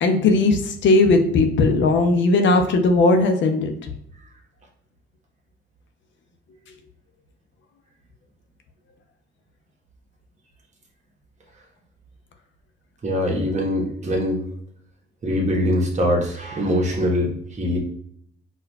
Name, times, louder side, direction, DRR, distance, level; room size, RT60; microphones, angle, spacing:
voice 1, 0.0-3.7, left 3 dB, 70° left, 5 dB, 0.6 m, -17 dB
voice 2, 13.0-14.4 15.2-17.8, equal, 35° right, -1 dB, 1.0 m, -22 dB
4.6 x 2.3 x 2.2 m, 0.69 s
cardioid pair, 90°, 20 cm